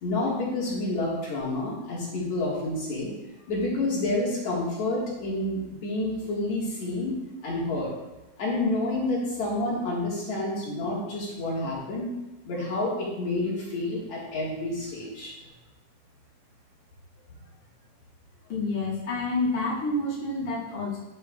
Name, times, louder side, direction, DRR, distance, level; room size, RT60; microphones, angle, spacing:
voice 1, 0.0-3.1 3.5-7.1 7.4-7.9 8.4-12.1 12.4-15.3, left 2 dB, 60° left, -5 dB, 2.7 m, -29 dB
voice 2, 18.5-21.0, left 2 dB, 30° left, -7 dB, 1.7 m, -28 dB
12.0 x 6.7 x 2.3 m, 1.0 s
omnidirectional pair, 4.0 m